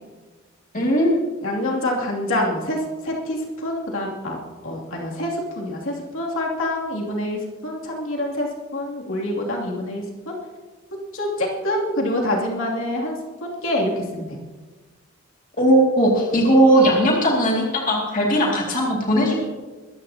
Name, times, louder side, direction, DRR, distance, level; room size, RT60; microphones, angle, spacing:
voice 1, 0.7-1.1 15.6-19.3, right 1 dB, 35° left, -2 dB, 2.4 m, -18 dB
voice 2, 1.4-10.3 10.9-14.4, left 1 dB, 65° left, -2 dB, 2.7 m, -26 dB
22.5 x 14.0 x 2.9 m, 1.3 s
head